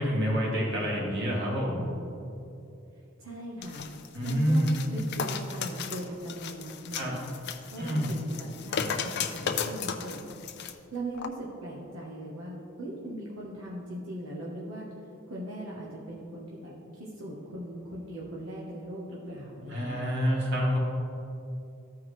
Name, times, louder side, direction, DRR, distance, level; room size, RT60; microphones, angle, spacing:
voice 1, 0.0-1.8 4.1-4.9 6.9-7.2 7.8-8.1 19.7-20.8, equal, 60° right, -3 dB, 1.9 m, -27 dB
voice 2, 3.2-3.8 4.2-7.3 7.7-10.4 10.9-14.9 15.3-16.7 17.0-20.1, right 1 dB, 85° right, -5 dB, 1.2 m, -39 dB
sound 1, 3.6-10.7 11.2-11.3, left 6 dB, 55° left, 0.5 m, -35 dB
14.0 x 4.7 x 3.2 m, 2.7 s
head